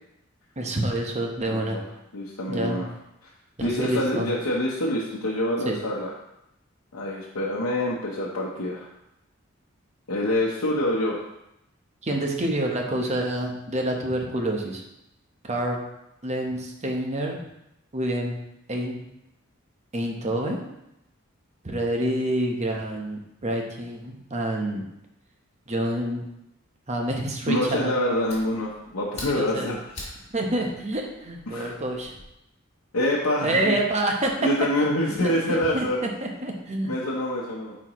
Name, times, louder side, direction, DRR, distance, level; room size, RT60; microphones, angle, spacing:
voice 1, 0.6-1.8 2.5-2.8 3.6-4.3 5.6-5.8 12.0-14.8 15.4-15.8 16.2-17.4 17.9-18.4 18.7-19.0 19.9-20.7 21.6-24.8 25.7-26.2 26.9-27.9 29.2-29.7 30.3-32.1 33.4-34.3 35.0-36.9, right 1 dB, 30° right, 1 dB, 0.9 m, -27 dB
voice 2, 1.5-1.8 2.1-2.8 3.6-6.1 6.9-8.9 10.1-11.2 27.5-29.8 31.5-31.8 32.9-33.8 34.4-36.0 36.9-37.8, left 1 dB, 90° left, -5 dB, 0.9 m, -26 dB
Fire, 27.9-32.3, left 2 dB, 30° left, 1.9 m, -44 dB
8.7 x 4.3 x 3.0 m, 0.86 s
head